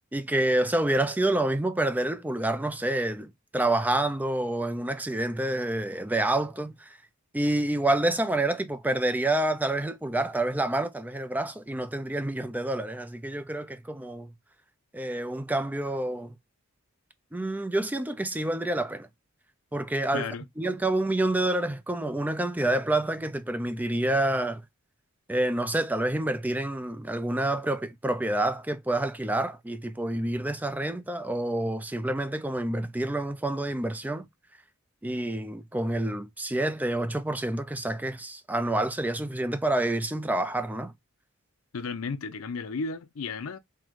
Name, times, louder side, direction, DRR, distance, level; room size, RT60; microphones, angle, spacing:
voice 1, 0.1-7.0 7.3-14.3 14.9-16.4 17.3-19.1 19.7-20.3 20.6-24.6 25.3-34.3 35.0-40.9, right 1 dB, 10° right, 0.4 m, -28 dB
voice 2, 20.1-20.4 41.7-43.6, left 4 dB, 75° left, 0.5 m, -33 dB
3.9 x 2.1 x 4.5 m
head